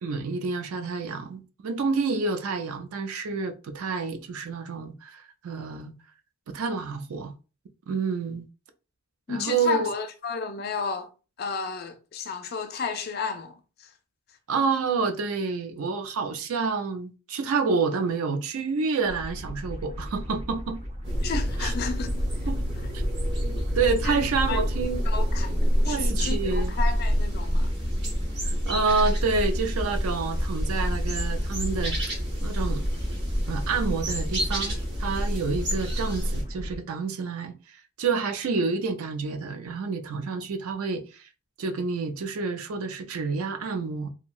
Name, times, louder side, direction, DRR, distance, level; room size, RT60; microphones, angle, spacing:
voice 1, 0.0-5.9 6.5-7.3 7.9-8.5 9.3-9.9 14.5-20.8 21.6-21.7 22.5-22.6 23.4-25.0 25.8-26.7 28.7-32.0 32.4-32.8 33.5-41.3 41.6-44.1, right 4 dB, 70° right, 0.4 m, -28 dB
voice 2, 9.3-11.1 11.4-13.9 21.2-22.2 24.0-24.6 25.1-25.5 25.8-27.7, left 5 dB, 45° left, 0.4 m, -32 dB
sound 1, 19.1-36.8, equal, 25° right, 0.6 m, -37 dB
sound 2, 21.0-36.4, equal, 50° right, 1.1 m, -27 dB
2.9 x 2.6 x 2.3 m
head